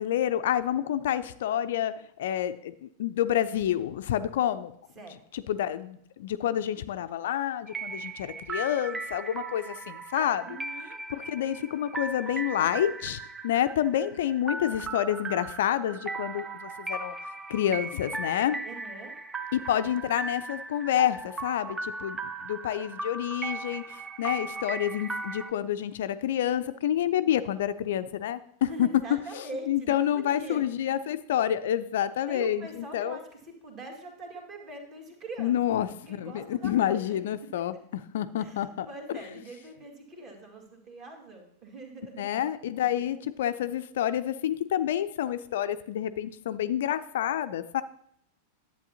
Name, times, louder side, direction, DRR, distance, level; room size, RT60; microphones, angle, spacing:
voice 1, 0.0-4.7 5.3-10.5 11.1-17.2 17.5-18.6 19.5-28.9 29.3-32.6 32.9-33.2 35.4-39.2 42.2-47.8, left 11 dB, 55° left, 13 dB, 0.3 m, -28 dB
sound 1, 7.7-25.5, right 3 dB, 15° right, 0.5 m, -37 dB
voice 2, 10.5-11.0 18.6-19.1 19.7-20.1 28.6-30.6 32.3-37.2 38.4-42.2 42.9-43.1, right 2 dB, 30° right, 2 dB, 2.0 m, -43 dB
10.5 x 8.0 x 2.8 m, 0.70 s
figure-of-eight pair, 90°, 0 cm